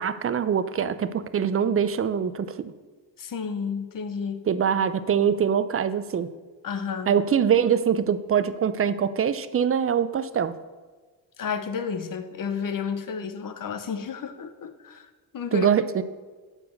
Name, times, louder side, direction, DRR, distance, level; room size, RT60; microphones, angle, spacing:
voice 1, 0.0-2.7 4.5-6.3 7.1-10.5 15.5-16.0, right 7 dB, 30° right, 13 dB, 0.5 m, -23 dB
voice 2, 3.2-4.5 6.6-7.1 11.4-15.7, left 6 dB, 45° left, 9 dB, 0.9 m, -31 dB
7.2 x 4.6 x 6.6 m, 1.4 s
supercardioid pair, 60°, 45 cm